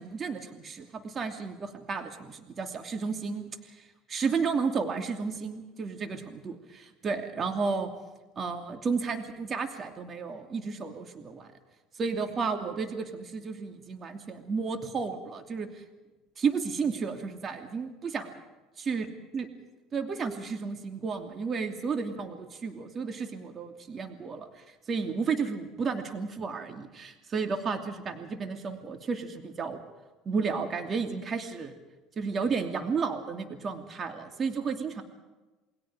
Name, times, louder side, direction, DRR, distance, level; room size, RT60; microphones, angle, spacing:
voice 1, 0.0-3.8 4.1-7.9 8.4-11.5 12.0-15.8 16.4-18.3 18.8-19.1 19.3-19.5 19.9-29.8 30.2-31.7 32.2-35.0, right 5 dB, 35° right, 5 dB, 2.8 m, -32 dB
28.5 x 21.0 x 5.0 m, 1.1 s
supercardioid pair, 95°, 0 cm